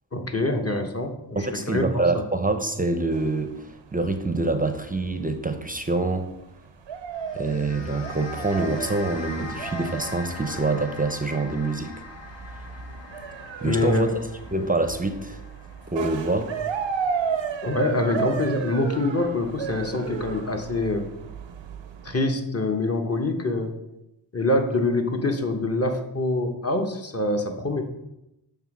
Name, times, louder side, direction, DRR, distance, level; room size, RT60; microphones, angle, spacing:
voice 1, 0.1-2.2 13.6-14.2 17.6-21.1 22.0-23.7 24.3-27.8, left 2 dB, 35° left, 4 dB, 1.2 m, -25 dB
voice 2, 1.4-6.3 7.3-11.9 13.6-14.2 14.5-15.4 15.9-16.5, right 2 dB, 20° right, 8 dB, 0.6 m, -26 dB
sound 1, 3.1-22.2, right 7 dB, 80° right, 0.7 m, -34 dB
sound 2, 7.1-17.7, left 3 dB, 75° left, 0.9 m, -41 dB
7.2 x 3.5 x 6.1 m, 0.88 s
cardioid pair, 50°, 45 cm